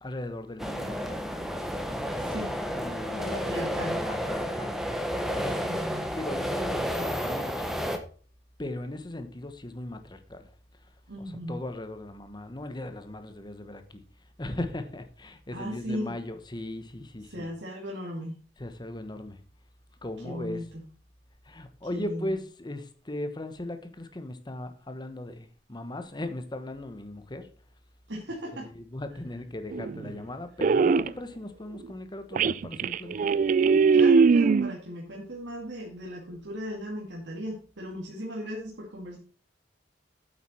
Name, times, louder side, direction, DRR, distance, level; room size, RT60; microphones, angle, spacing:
voice 1, 0.0-1.0 2.7-3.5 3.9-4.8 5.3-5.6 6.1-7.9 8.6-10.5 11.2-14.0 14.4-17.5 18.6-19.4 20.0-20.6 21.4-27.5 28.6-33.4, left 1 dB, 25° left, 1.1 m, -38 dB
sound 1, 0.6-8.0, equal, ahead, 1.1 m, -31 dB
voice 2, 2.2-2.5 3.1-4.0 5.6-6.1 11.1-11.6 15.5-16.1 17.3-18.3 20.2-20.8 21.9-22.4 28.1-28.7 33.9-39.2, equal, 85° right, 2.3 m, -37 dB
sound 2, 29.7-30.2 30.6-31.1 31.8-31.9 32.3-34.7, right 5 dB, 45° right, 0.3 m, -21 dB
8.5 x 8.0 x 4.4 m
head